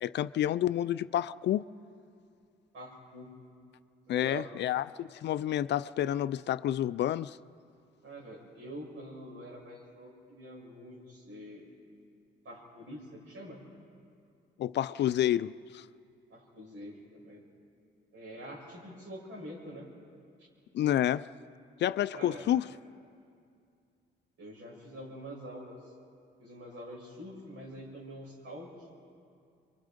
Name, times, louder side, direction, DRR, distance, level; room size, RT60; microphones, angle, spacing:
voice 1, 0.0-1.6 4.1-7.4 14.6-15.8 20.7-21.3 21.8-22.7, left 11 dB, 60° left, 0.4 m, -29 dB
voice 2, 2.7-3.3 4.1-4.5 8.0-11.7 12.4-13.6 16.3-17.4 18.1-19.9 20.4-20.5 22.1-22.5 24.4-25.9 26.4-28.9, equal, 70° right, 7.1 m, -45 dB
26.5 x 23.5 x 5.2 m
cardioid pair, 90°, 20 cm